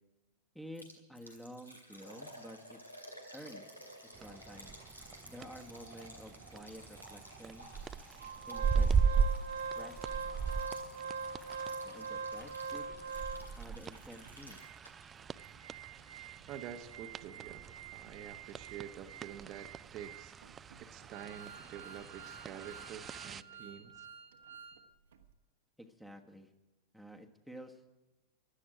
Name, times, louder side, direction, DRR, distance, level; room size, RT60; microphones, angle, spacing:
voice 1, 0.5-2.8 3.3-3.7 4.0-4.7 5.3-7.7 8.5-8.9 9.7-10.1 11.8-12.9 13.6-14.6 25.8-26.5 26.9-27.8, equal, ahead, 4 dB, 1.4 m, -50 dB
Liquid, 0.8-15.2 15.4-15.5 16.0-16.1, equal, 90° left, 2.4 m, -54 dB
sound 1, 4.1-23.4, right 6 dB, 20° right, 0.4 m, -38 dB
Organ, 8.2-13.7 14.2-14.3 14.6-14.7 15.2-24.8 25.1-25.2, right 5 dB, 65° right, 1.3 m, -44 dB
voice 2, 16.5-17.6 17.9-20.3 20.8-24.1, right 9 dB, 35° right, 5 dB, 1.0 m, -48 dB
16.5 x 12.5 x 5.0 m, 1.1 s
figure-of-eight pair, 90°, 0 cm